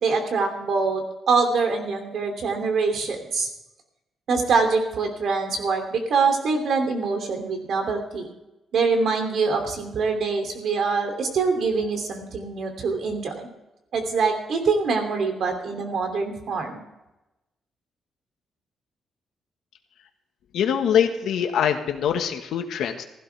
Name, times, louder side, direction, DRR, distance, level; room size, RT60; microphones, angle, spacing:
voice 1, 0.0-3.5 4.3-8.3 8.7-13.5 13.9-16.8, right 4 dB, 55° right, 5 dB, 2.9 m, -24 dB
voice 2, 20.5-23.0, left 8 dB, 75° left, 5 dB, 1.6 m, -23 dB
16.0 x 15.5 x 3.5 m, 0.96 s
cardioid pair, 175°, 0 cm